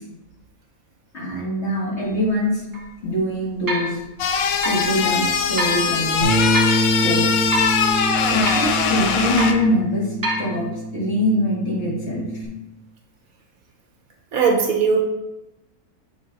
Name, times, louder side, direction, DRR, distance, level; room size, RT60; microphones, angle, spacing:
voice 1, 1.1-2.6 3.0-4.0 4.6-6.3 7.0-7.2 8.3-10.6 10.9-12.2, left 1 dB, 45° left, -6 dB, 2.2 m, -23 dB
sound 1, 2.0-2.1 2.7-2.8 3.7-3.9 4.6-4.9 5.6-5.8 6.5-6.8 7.5-7.8 8.4-8.8 9.4-9.6 10.2-10.5, right 1 dB, 30° right, 0.4 m, -26 dB
sound 2, 4.2-9.5, left 6 dB, 70° left, 1.0 m, -21 dB
Bass guitar, 6.2-12.5, right 1 dB, 45° right, 1.1 m, -25 dB
voice 2, 14.3-15.0, right 5 dB, 65° right, 2 dB, 1.1 m, -18 dB
6.9 x 3.8 x 4.0 m, 0.97 s
omnidirectional pair, 1.6 m